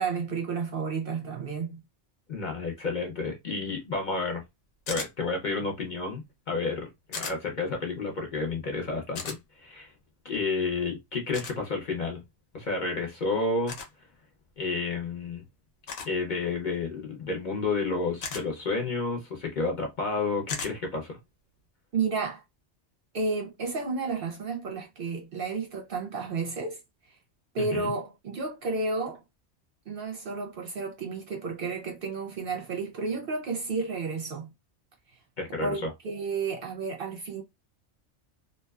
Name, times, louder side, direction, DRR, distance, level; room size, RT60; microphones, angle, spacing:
voice 1, 0.0-1.8 21.9-22.4 23.1-26.8 27.5-29.2 29.9-34.5 35.6-37.4, right 4 dB, 60° right, 0.7 m, -31 dB
voice 2, 2.3-4.4 4.9-9.9 10.2-12.2 12.5-13.8 14.6-15.4 16.0-21.2 27.6-27.9 35.4-35.9, left 3 dB, 50° left, 0.7 m, -31 dB
sound 1, 4.9-5.1 7.1-7.4 9.2-9.4 11.3-11.6 13.7-13.9 15.9-16.2 18.2-18.4 20.5-20.7, left 4 dB, 85° left, 1.0 m, -35 dB
2.6 x 2.2 x 2.2 m
omnidirectional pair, 1.2 m